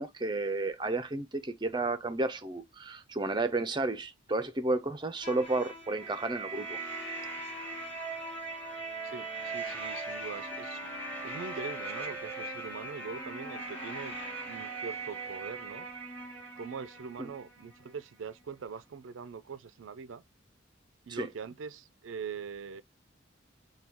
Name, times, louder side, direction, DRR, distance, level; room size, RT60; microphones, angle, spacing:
voice 1, 0.0-6.8 17.2-17.3 21.1-21.3, right 2 dB, 25° right, 0.6 m, -32 dB
sound 1, 5.2-17.9, right 2 dB, 10° left, 1.7 m, -40 dB
voice 2, 9.0-10.8 11.2-14.2 14.5-15.9 16.6-20.2 21.1-22.8, right 6 dB, 80° right, 0.4 m, -42 dB
6.0 x 2.3 x 3.5 m
head